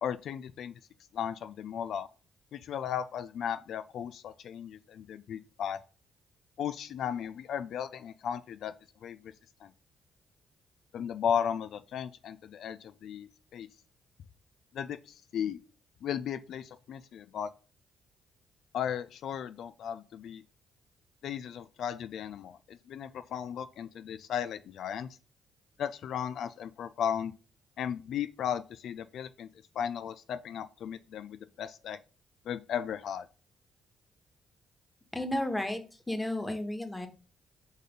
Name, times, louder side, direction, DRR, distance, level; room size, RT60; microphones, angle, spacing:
voice 1, 0.0-0.7 1.1-2.1 2.5-5.8 6.6-8.7 9.0-9.3 9.6-9.7 10.9-13.7 14.7-15.6 16.0-17.5 18.7-20.4 21.2-25.1 25.8-27.3 27.8-29.5 29.8-32.0 32.5-33.3, left 8 dB, 75° left, 12 dB, 0.4 m, -35 dB
voice 2, 35.1-35.8 36.1-37.1, left 1 dB, 10° left, 6 dB, 1.4 m, -32 dB
5.0 x 4.2 x 5.2 m, 0.34 s
cardioid pair, 80°, 0 cm